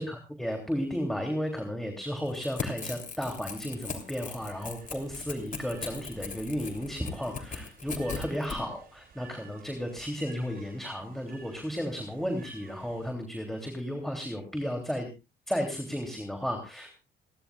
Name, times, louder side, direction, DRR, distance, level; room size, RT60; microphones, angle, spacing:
voice 1, 0.0-15.1 15.5-16.9, equal, ahead, 3 dB, 3.0 m, -33 dB
Crackle / Tearing, 2.2-8.6, left 5 dB, 40° left, 3.3 m, -39 dB
sound 1, 3.6-13.1, right 5 dB, 50° right, 3.2 m, -54 dB
29.0 x 11.5 x 2.4 m, 0.29 s
cardioid pair, 90°, 20 cm